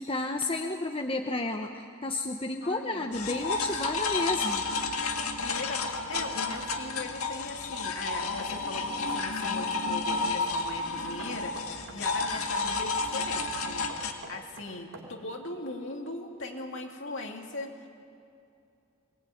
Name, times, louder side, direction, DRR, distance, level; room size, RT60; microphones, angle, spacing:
voice 1, 0.0-4.6, left 2 dB, 25° left, 4 dB, 0.9 m, -31 dB
voice 2, 2.6-3.1 5.4-17.9, left 2 dB, 60° left, 2 dB, 2.8 m, -40 dB
sound 1, 3.1-14.1, left 3 dB, 90° left, 1.9 m, -31 dB
Knock, 5.5-6.7 8.4-9.6 11.2-12.4 13.9-15.3, right 2 dB, 65° right, 3.3 m, -46 dB
23.0 x 20.0 x 9.3 m, 2.5 s
head